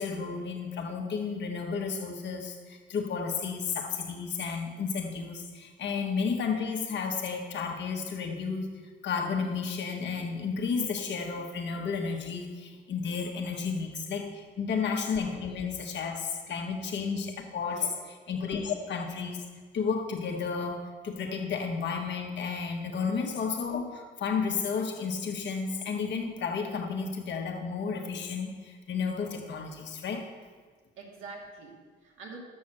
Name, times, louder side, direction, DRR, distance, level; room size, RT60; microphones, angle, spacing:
voice 1, 0.0-8.7 9.0-17.9 18.3-19.4 19.7-30.2, left 5 dB, 65° left, 3 dB, 1.5 m, -32 dB
voice 2, 31.0-32.4, right 4 dB, 85° right, -2 dB, 2.3 m, -46 dB
7.0 x 6.5 x 7.5 m, 1.5 s
cardioid pair, 90°, 20 cm